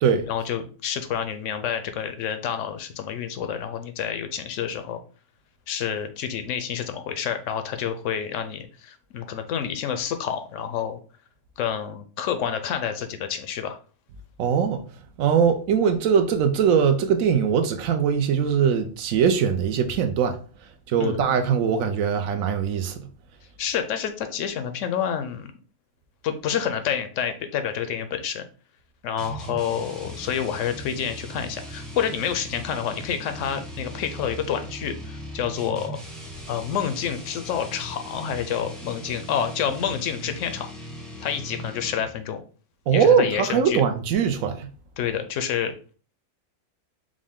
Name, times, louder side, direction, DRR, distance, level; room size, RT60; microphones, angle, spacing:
voice 1, 0.3-5.0 5.7-11.0 11.6-13.8 21.0-21.2 23.6-25.5 26.2-28.4 29.0-36.0 36.5-40.7 41.2-42.4 42.9-43.8 45.0-45.9, left 8 dB, 70° left, 0.8 m, -28 dB
voice 2, 14.4-14.8 15.2-20.4 20.9-23.1 42.9-44.7, right 7 dB, 70° right, 0.9 m, -21 dB
sound 1, 29.2-42.3, equal, ahead, 0.6 m, -39 dB
5.0 x 2.1 x 3.5 m
omnidirectional pair, 1.6 m